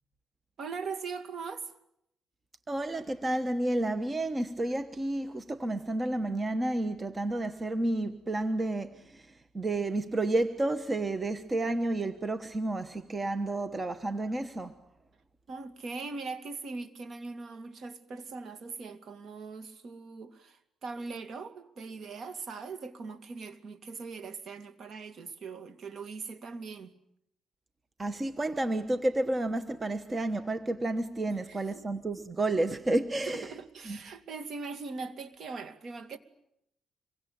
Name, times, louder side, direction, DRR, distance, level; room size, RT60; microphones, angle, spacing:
voice 1, 0.6-1.7 15.5-26.9 31.3-31.8 33.3-36.2, right 4 dB, 55° right, 2.5 m, -41 dB
voice 2, 2.7-14.8 28.0-33.5 33.8-34.0, right 2 dB, 25° right, 1.2 m, -31 dB
26.0 x 23.5 x 8.8 m
cardioid pair, 120°, 0 cm